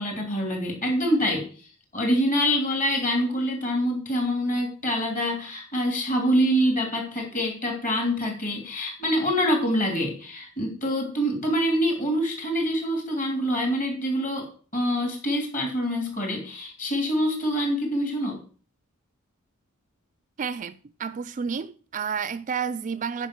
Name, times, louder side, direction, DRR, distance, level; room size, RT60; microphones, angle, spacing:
voice 1, 0.0-1.5 1.9-14.5 14.7-18.4, equal, 40° left, 3.1 m, -25 dB
voice 2, 20.4-23.3, right 6 dB, 35° right, 0.4 m, -31 dB
9.9 x 5.4 x 6.4 m
head